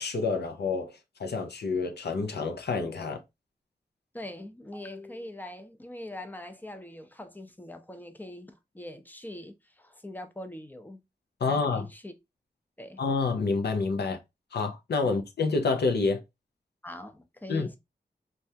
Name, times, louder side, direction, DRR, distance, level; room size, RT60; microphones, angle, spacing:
voice 1, 0.0-3.2 11.4-11.9 13.0-14.2 14.5-16.2 17.5-17.7, left 4 dB, 80° left, 0.6 m, -28 dB
voice 2, 4.1-11.0 11.5-12.1 12.8-13.0 15.0-15.2 16.8-17.8, left 1 dB, 10° left, 0.5 m, -42 dB
3.3 x 2.3 x 2.7 m
wide cardioid pair, 95°, 17 cm